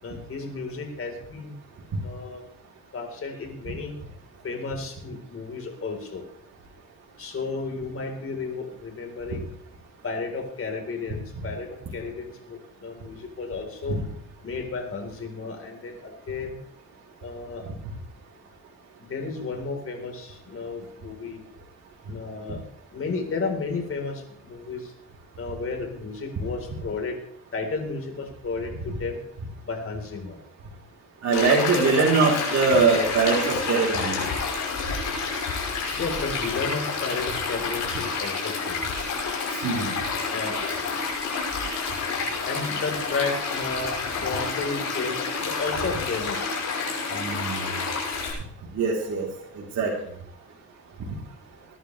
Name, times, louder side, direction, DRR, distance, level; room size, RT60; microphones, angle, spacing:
voice 1, 0.0-1.5 2.0-2.4 2.9-3.9 4.4-6.2 7.2-9.5 10.0-11.7 11.9-14.0 14.4-16.6 17.2-17.6 19.1-21.4 22.1-22.6 22.9-24.9 25.4-27.1 27.5-29.2 29.6-30.4 36.0-38.8 40.3-40.6 42.4-43.9 44.2-46.5, left 4 dB, 45° left, 3 dB, 4.0 m, -33 dB
voice 2, 31.2-34.2 39.6-39.9 47.1-47.7 48.7-49.3 49.5-49.9, right 4 dB, 65° right, -3 dB, 3.5 m, -22 dB
Stream, 31.3-48.3, left 4 dB, 80° left, 5.9 m, -29 dB
21.0 x 11.0 x 3.3 m, 0.64 s
cardioid pair, 90°, 30 cm